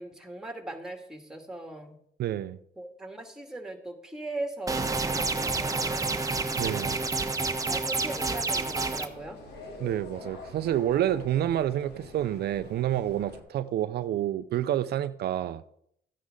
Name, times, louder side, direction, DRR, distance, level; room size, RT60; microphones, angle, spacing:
voice 1, 0.0-2.0 2.8-6.1 7.6-9.4, right 2 dB, 5° right, 2.2 m, -39 dB
voice 2, 2.2-2.6 6.6-7.0 9.8-15.6, right 12 dB, 70° right, 0.5 m, -28 dB
sound 1, 4.7-9.1, right 3 dB, 20° right, 1.0 m, -29 dB
sound 2, 8.1-13.4, left 2 dB, 75° left, 2.6 m, -45 dB
14.0 x 9.7 x 3.8 m
cardioid pair, 80°, 17 cm